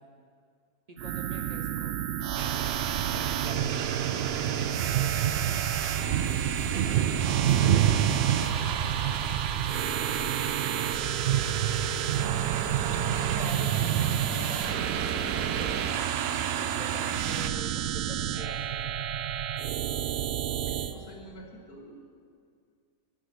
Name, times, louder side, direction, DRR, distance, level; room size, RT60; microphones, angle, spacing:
voice 1, 0.9-2.0 3.0-3.7 5.0-5.3 13.2-18.8, right 2 dB, 25° right, 2 dB, 1.2 m, -43 dB
sound 1, 1.0-20.9, right 10 dB, 85° right, 1.1 m, -32 dB
sound 2, 2.3-17.5, right 9 dB, 65° right, 0.6 m, -29 dB
sound 3, 5.4-12.2 12.5-12.8 13.4-13.5 14.3-14.4, left 1 dB, 10° right, 4.0 m, -44 dB
voice 2, 10.6-11.1 20.3-21.9, equal, 70° left, 0 dB, 2.5 m, -49 dB
17.5 x 6.4 x 6.4 m, 2.2 s
omnidirectional pair, 1.6 m